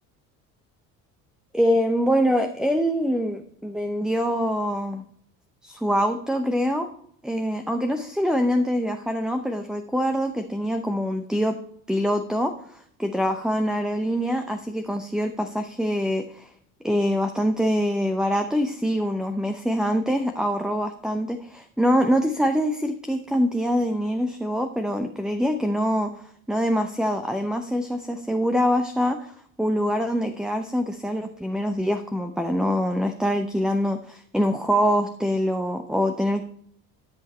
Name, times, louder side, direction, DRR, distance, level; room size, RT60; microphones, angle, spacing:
voice 1, 1.5-5.0 5.6-6.9 7.2-11.6 11.9-16.5 16.8-26.1 26.5-29.3 29.6-36.4, equal, ahead, 6 dB, 0.7 m, -24 dB
13.0 x 5.7 x 4.3 m, 0.66 s
hypercardioid pair, 75°, 41 cm